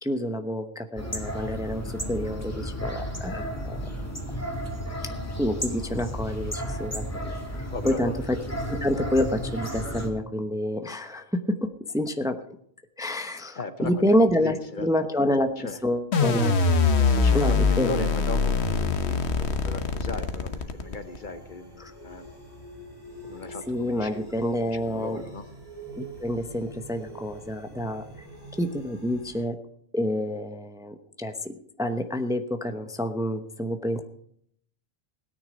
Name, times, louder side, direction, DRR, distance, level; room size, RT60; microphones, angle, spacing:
voice 1, 0.0-3.8 5.4-7.3 7.8-8.4 8.7-11.7 11.9-12.4 13.0-16.6 17.3-18.0 21.8-21.9 23.7-25.2 26.0-28.0 28.6-29.6 29.9-34.0, left 1 dB, 5° right, 7 dB, 0.8 m, -28 dB
sound 1, 1.0-10.1, equal, 15° left, 2.2 m, -33 dB
voice 2, 7.7-8.2 10.8-10.9 13.6-14.9 15.2-15.3 15.6-15.8 17.0-17.6 17.8-22.3 23.2-24.2 24.6-25.5, left 3 dB, 50° left, 10 dB, 1.0 m, -37 dB
sound 2, 16.1-21.2, left 4 dB, 80° left, 1.4 m, -23 dB
sound 3, 19.1-29.4, right 1 dB, 20° right, 5.6 m, -45 dB
17.0 x 9.8 x 5.2 m, 0.66 s
omnidirectional pair, 1.1 m